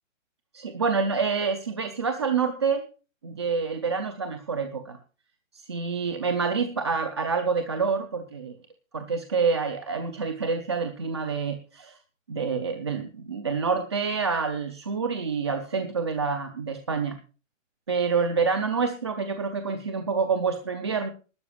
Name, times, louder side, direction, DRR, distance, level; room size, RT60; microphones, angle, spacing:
voice 1, 0.5-2.9 3.2-5.0 5.5-8.6 8.9-12.0 12.3-17.2 17.9-21.1, right 5 dB, 20° right, 7 dB, 0.5 m, -27 dB
12.0 x 6.9 x 8.3 m, 0.35 s
hypercardioid pair, 170°, 39 cm